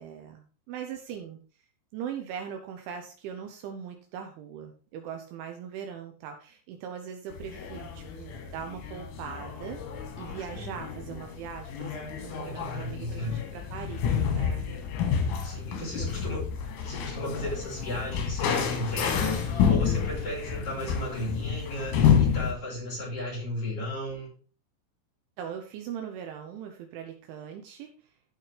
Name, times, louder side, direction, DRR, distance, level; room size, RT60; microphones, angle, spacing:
voice 1, 0.0-1.4 1.9-9.8 10.2-14.7 16.0-16.1 25.4-28.1, right 8 dB, 80° right, 4 dB, 3.2 m, -40 dB
sound 1, 7.3-22.5, left 7 dB, 85° left, 4.4 m, -29 dB
voice 2, 12.2-13.4 15.4-16.4 16.8-24.3, left 1 dB, 30° left, -4 dB, 3.9 m, -35 dB
15.0 x 5.5 x 3.4 m, 0.39 s
omnidirectional pair, 5.8 m